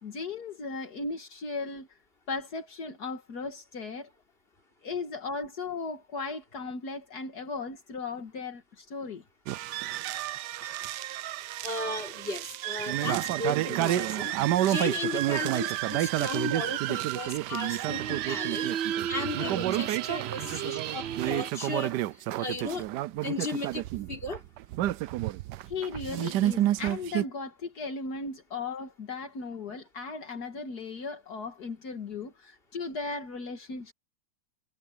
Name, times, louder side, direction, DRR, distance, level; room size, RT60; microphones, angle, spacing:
voice 1, 0.0-1.9 2.3-4.1 4.8-9.2 25.7-33.9, left 4 dB, 70° left, 2.2 m, -37 dB
sound 1, 9.5-27.2, right 14 dB, 90° right, 1.2 m, -30 dB
voice 2, 11.6-14.3 14.6-18.7 19.1-22.0 22.4-22.8 23.2-24.4, left 2 dB, 35° left, 4.1 m, -35 dB
sound 2, 17.9-21.7, right 9 dB, 70° right, 0.6 m, -35 dB
omnidirectional pair, 1.8 m